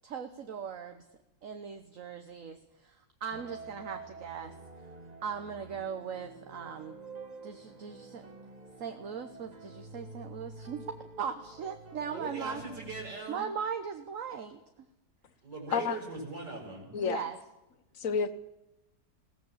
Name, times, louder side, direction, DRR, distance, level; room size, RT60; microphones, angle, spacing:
voice 1, 0.0-1.0 1.4-4.5 5.2-7.0 7.4-8.3 8.8-10.8 11.2-12.6 13.3-14.6 17.0-17.4, right 7 dB, 55° right, 7 dB, 1.4 m, -39 dB
sound 1, 3.3-13.1, right 3 dB, 25° right, 1.3 m, -48 dB
voice 2, 12.1-13.4 15.4-16.9, right 3 dB, 85° right, -2 dB, 6.7 m, -40 dB
voice 3, 18.0-18.3, left 6 dB, 55° left, 13 dB, 1.4 m, -29 dB
21.0 x 17.5 x 7.3 m, 0.92 s
omnidirectional pair, 1.8 m